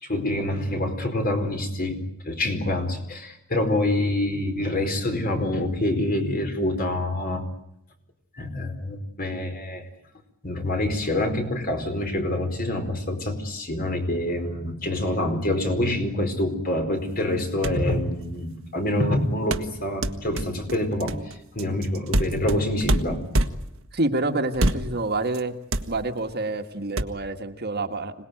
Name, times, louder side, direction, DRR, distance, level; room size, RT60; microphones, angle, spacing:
voice 1, 0.0-7.4 8.4-9.8 10.4-23.5, left 1 dB, 45° left, 6 dB, 4.6 m, -26 dB
sound 1, 17.3-17.4 17.6-17.9 19.5-23.8 24.5-25.0 25.3-25.4 25.7-26.3 27.0-27.1, right 1 dB, 70° right, 1.5 m, -25 dB
voice 2, 23.9-25.6 25.9-28.1, right 2 dB, 50° right, 6 dB, 1.8 m, -27 dB
26.5 x 19.5 x 9.4 m, 0.80 s
head